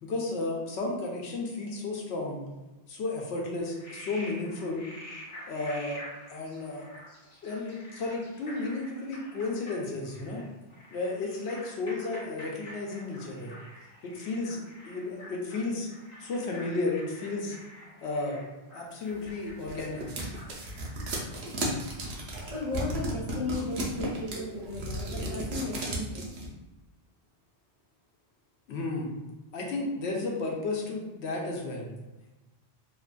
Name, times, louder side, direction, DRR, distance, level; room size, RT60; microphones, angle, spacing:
voice 1, 0.0-2.4 2.9-4.9 5.5-6.0 6.3-6.9 7.4-10.4 10.9-13.5 14.0-15.9 16.2-17.6 18.0-18.4 18.7-20.0 28.7-29.1 29.5-31.9, left 3 dB, 80° left, -1 dB, 0.8 m, -33 dB
Frog, 3.6-21.0, equal, 55° left, 1.0 m, -48 dB
sound 1, 19.2-26.5, right 1 dB, 70° right, 0.9 m, -34 dB
voice 2, 22.0-26.3, left 2 dB, 35° right, -8 dB, 0.6 m, -35 dB
2.7 x 2.4 x 2.2 m, 1.1 s
omnidirectional pair, 1.1 m